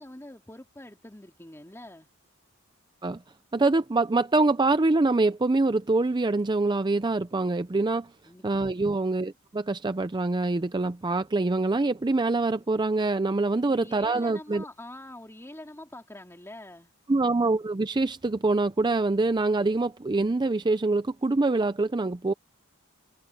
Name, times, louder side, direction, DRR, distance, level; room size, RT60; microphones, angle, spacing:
voice 1, 0.0-2.1 8.3-8.6 13.7-16.9, left 1 dB, 10° left, 2.7 m, -45 dB
voice 2, 3.5-8.1 8.4-14.6 17.1-22.3, right 3 dB, 20° right, 0.5 m, -25 dB
head